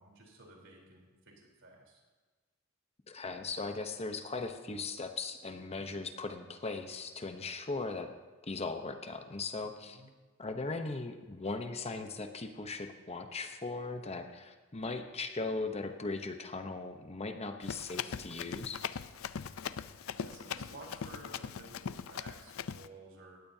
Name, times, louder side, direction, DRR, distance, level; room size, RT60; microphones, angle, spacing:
voice 1, 0.0-2.0 9.8-10.1 19.6-23.4, right 2 dB, 65° right, -1 dB, 3.8 m, -53 dB
voice 2, 3.1-8.1 8.4-10.0 10.4-18.8, left 3 dB, 30° left, 7 dB, 0.8 m, -38 dB
Run, 17.6-22.9, left 7 dB, 80° left, 0.5 m, -40 dB
19.5 x 16.0 x 2.8 m, 1.3 s
head